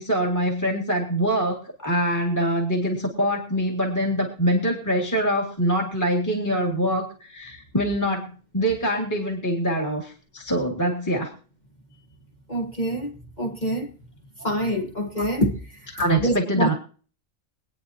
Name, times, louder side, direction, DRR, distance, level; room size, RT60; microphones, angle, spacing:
voice 1, 0.0-11.3 15.2-15.3 15.9-16.7, equal, 15° left, 1.9 m, -24 dB
voice 2, 12.5-13.1 13.4-13.9 14.4-15.5 16.2-16.7, equal, 35° left, 1.3 m, -25 dB
24.5 x 9.3 x 2.8 m
omnidirectional pair, 1.4 m